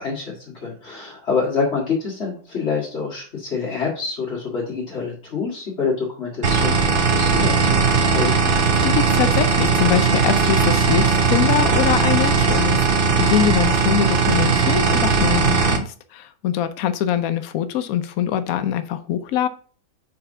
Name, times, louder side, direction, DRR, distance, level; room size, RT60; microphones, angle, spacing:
voice 1, 0.0-8.5, left 5 dB, 35° left, -7 dB, 2.0 m, -26 dB
sound 1, 6.4-15.8, right 5 dB, 55° right, 0.6 m, -18 dB
voice 2, 8.8-19.5, left 10 dB, 80° left, 10 dB, 0.7 m, -23 dB
5.0 x 4.7 x 5.4 m, 0.41 s
omnidirectional pair, 2.2 m